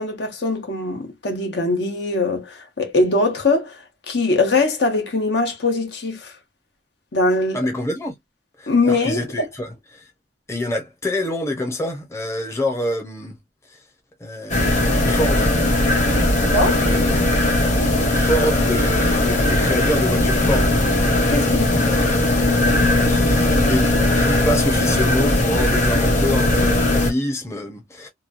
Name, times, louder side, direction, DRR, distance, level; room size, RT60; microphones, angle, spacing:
voice 1, 0.0-3.8 4.1-6.3 7.1-7.6 8.7-9.2 16.5-16.8 21.3-21.9, left 2 dB, 70° left, 1.0 m, -21 dB
voice 2, 7.5-8.1 8.6-10.0 10.5-13.4 13.7-13.8 14.2-15.5 16.4-17.3 18.1-20.8 21.7-22.3 23.1-28.1, left 1 dB, 15° left, 0.7 m, -26 dB
sound 1, 14.5-27.1, left 1 dB, 40° left, 1.2 m, -18 dB
2.9 x 2.3 x 2.5 m
head